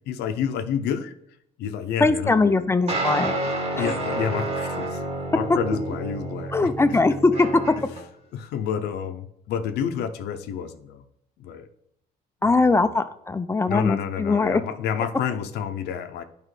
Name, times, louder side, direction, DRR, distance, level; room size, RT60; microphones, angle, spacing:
voice 1, 0.1-1.1 1.6-2.7 3.7-5.0 5.3-6.6 6.9-7.0 8.3-11.0 11.4-11.7 12.4-12.8 13.7-16.2, left 8 dB, 80° left, 8 dB, 0.6 m, -29 dB
voice 2, 2.0-3.3 3.8-3.9 6.5-7.5 12.4-14.6, left 3 dB, 15° left, 11 dB, 0.4 m, -21 dB
sound 1, 2.9-8.0, right 2 dB, 40° right, 1.8 m, -29 dB
9.5 x 5.0 x 3.2 m, 0.76 s
cardioid pair, 110°, 17 cm